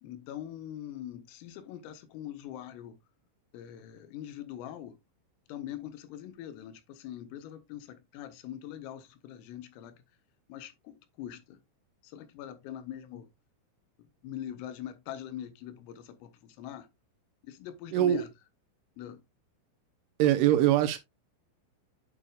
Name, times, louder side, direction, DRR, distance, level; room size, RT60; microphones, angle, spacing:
voice 1, 0.0-3.0 3.5-5.0 5.5-10.0 10.5-11.6 12.0-13.3 14.2-16.9 17.5-18.3 19.0-19.2, left 11 dB, 90° left, 3.6 m, -43 dB
voice 2, 17.9-18.2 20.2-21.0, right 12 dB, 85° right, 3.1 m, -23 dB
8.8 x 6.7 x 2.4 m
omnidirectional pair, 5.9 m